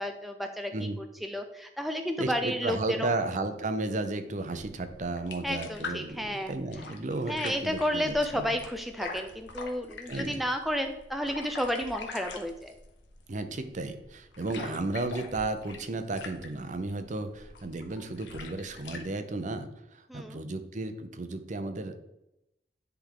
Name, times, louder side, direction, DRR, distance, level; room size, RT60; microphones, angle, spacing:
voice 1, 0.0-0.7 1.0-3.1 5.4-6.5 7.3-12.7 14.6-14.7 20.1-20.4, equal, ahead, 5 dB, 0.4 m, -32 dB
voice 2, 2.2-8.6 10.1-10.4 13.3-21.9, right 2 dB, 45° right, 9 dB, 0.7 m, -34 dB
sound 1, 4.5-19.0, left 4 dB, 80° left, 1.0 m, -44 dB
10.0 x 3.5 x 3.9 m, 0.86 s
head